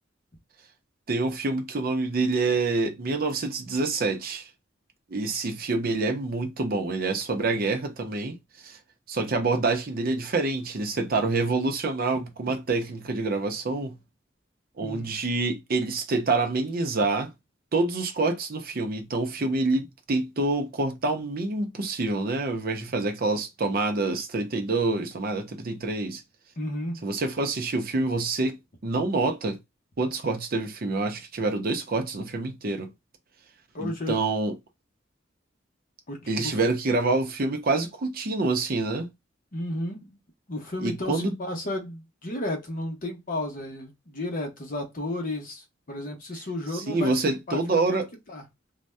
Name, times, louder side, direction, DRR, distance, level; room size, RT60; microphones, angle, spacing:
voice 1, 1.1-4.5 5.1-8.4 8.6-8.8 9.1-13.9 14.8-17.3 17.7-26.2 27.0-28.6 28.8-29.6 30.0-32.9 33.8-34.5 36.3-39.1 40.8-41.3 46.7-48.1, right 3 dB, 50° right, 0.6 m, -27 dB
voice 2, 14.8-15.1 26.6-27.0 33.7-34.2 36.1-36.6 39.5-40.2 40.5-48.0 48.3-48.4, left 1 dB, 45° left, 0.9 m, -33 dB
2.6 x 2.2 x 3.3 m
head